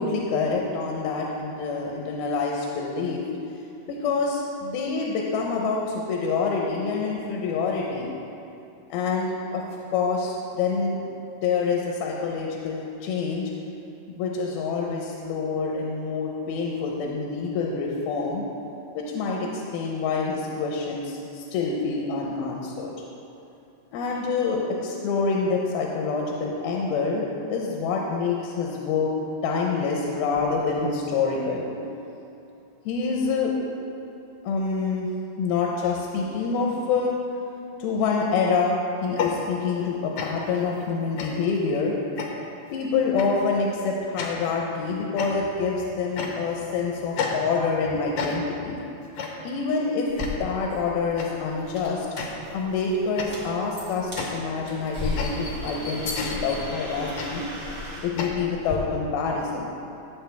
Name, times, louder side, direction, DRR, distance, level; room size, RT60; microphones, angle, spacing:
voice 1, 0.0-3.2 3.9-8.1 8.9-9.6 9.9-11.0 11.4-13.5 14.1-18.4 18.9-22.9 23.9-29.1 29.4-32.2 32.9-33.5 34.4-35.1 35.4-37.2 37.8-42.0 42.7-48.8 49.4-50.1 50.4-52.1 52.5-57.4 58.0-59.7, left 4 dB, 85° left, -1 dB, 2.8 m, -26 dB
sound 1, 39.0-39.9 40.2-40.6 41.2-41.6 42.2-42.6 43.2-43.5 44.2-44.6 45.2-45.7 46.2-46.7 47.2-47.8 48.2-48.7 49.2-49.6 50.2-50.6 51.2-51.5 52.2-52.7 53.2-58.3, left 4 dB, 70° left, 1.7 m, -33 dB
sound 2, 50.1-58.8, left 1 dB, 30° right, 1.4 m, -36 dB
15.5 x 7.8 x 3.5 m, 2.9 s
omnidirectional pair, 4.4 m